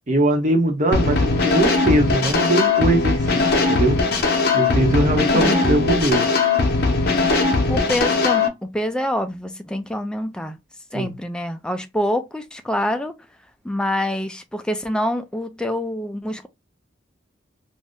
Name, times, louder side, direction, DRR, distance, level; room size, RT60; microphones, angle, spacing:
voice 1, 0.1-4.0 4.5-6.2 10.9-11.1, right 1 dB, 45° right, 0.8 m, -21 dB
sound 1, 0.9-8.5, left 3 dB, 60° left, 0.7 m, -19 dB
voice 2, 5.3-5.7 7.7-10.6 10.9-13.1 13.6-16.5, left 1 dB, 5° left, 0.4 m, -26 dB
2.6 x 2.1 x 3.5 m
head